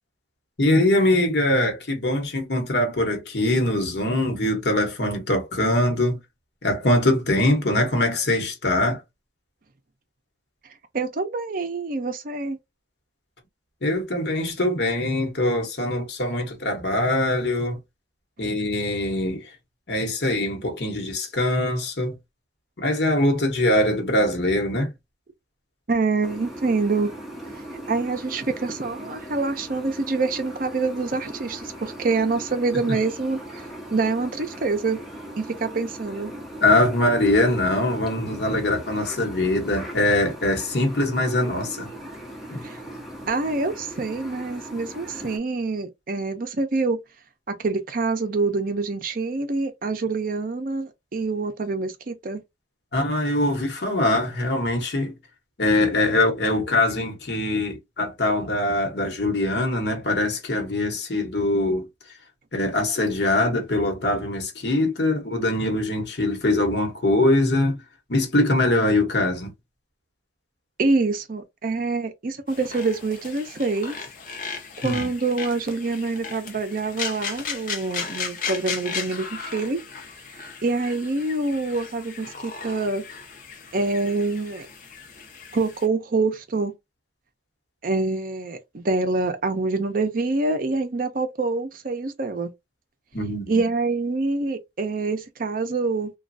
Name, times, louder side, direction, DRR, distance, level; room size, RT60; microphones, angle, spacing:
voice 1, 0.6-6.2 6.6-9.0 13.8-17.8 18.4-19.5 19.9-22.2 22.8-24.9 36.6-41.9 42.5-42.6 52.9-55.1 55.6-61.9 62.5-67.8 68.1-69.5 74.8-75.1 93.1-93.5, left 1 dB, 65° left, 1.0 m, -22 dB
voice 2, 10.9-12.6 25.9-27.1 27.9-33.6 33.9-35.0 35.4-36.3 42.6-42.8 43.3-47.0 47.5-52.4 70.8-74.0 74.8-79.8 80.6-83.0 83.7-84.7 85.5-86.7 87.8-92.5 93.5-96.1, right 3 dB, 50° right, 0.5 m, -26 dB
sound 1, 26.2-45.4, right 1 dB, ahead, 0.7 m, -39 dB
sound 2, 72.5-85.9, left 5 dB, 45° left, 0.6 m, -36 dB
3.0 x 2.3 x 2.6 m
head